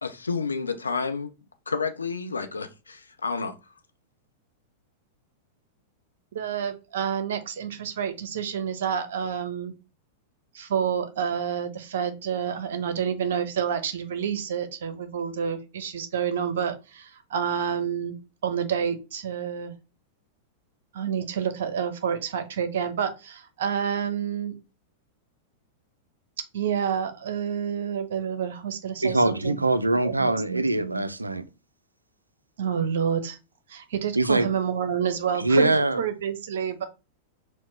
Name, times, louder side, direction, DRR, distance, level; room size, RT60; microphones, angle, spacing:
voice 1, 0.0-1.3 1.7-3.5, left 4 dB, 80° left, 0.6 m, -30 dB
voice 2, 6.3-9.7 10.5-18.1 18.4-19.7 20.9-24.5 26.5-29.7 30.0-31.1 32.6-33.4 33.7-36.8, right 7 dB, 60° right, 0.8 m, -29 dB
voice 3, 29.0-31.4 34.2-34.5 35.4-36.0, right 2 dB, 85° right, 0.4 m, -23 dB
4.4 x 2.2 x 4.3 m
figure-of-eight pair, 95°, 0 cm